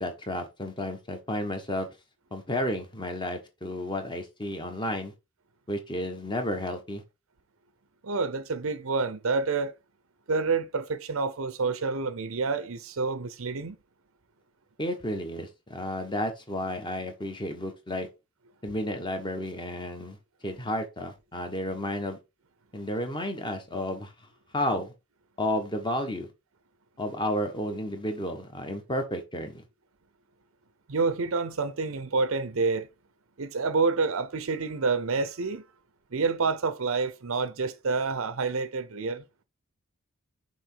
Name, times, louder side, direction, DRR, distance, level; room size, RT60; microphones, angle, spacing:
voice 1, 0.0-1.9 2.3-5.1 5.7-7.0 14.8-18.1 18.6-20.2 20.4-22.2 22.7-24.1 24.5-24.9 25.4-26.3 27.0-29.6, left 1 dB, 20° left, 1.3 m, -32 dB
voice 2, 8.0-9.7 10.3-13.8 30.9-32.9 33.4-35.6 36.1-39.2, right 4 dB, 65° right, 0.6 m, -28 dB
6.3 x 4.5 x 4.5 m
head